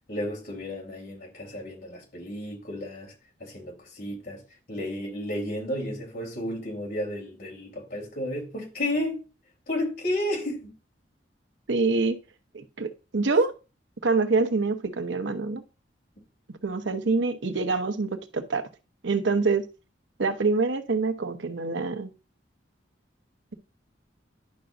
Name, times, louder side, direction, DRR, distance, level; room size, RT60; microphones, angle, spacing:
voice 1, 0.1-3.1 3.4-4.4 4.7-9.2 9.7-10.7, left 1 dB, 55° left, 3.6 m, -32 dB
voice 2, 11.7-12.2 12.5-13.5 14.0-15.6 16.5-18.7 19.0-19.6 20.2-22.1, right 3 dB, 85° right, 1.0 m, -25 dB
10.5 x 5.9 x 2.6 m
head